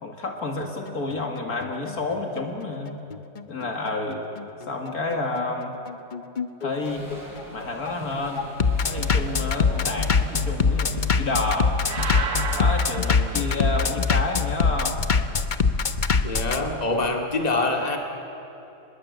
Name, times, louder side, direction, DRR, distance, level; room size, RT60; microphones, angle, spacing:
voice 1, 0.0-3.0 3.5-4.2 4.7-5.8 6.6-7.1 7.5-8.5 8.8-11.8 12.5-15.0, left 2 dB, 60° left, 3 dB, 2.5 m, -29 dB
Bass drum, 0.6-16.6, left 5 dB, 40° left, 0.7 m, -24 dB
sound 1, 6.8-11.8, equal, 10° right, 5.2 m, -42 dB
sound 2, 11.8-14.1, right 5 dB, 70° right, 1.9 m, -33 dB
voice 2, 16.2-18.0, left 2 dB, 25° left, 2 dB, 2.3 m, -25 dB
24.5 x 21.5 x 8.1 m, 2.9 s
omnidirectional pair, 1.8 m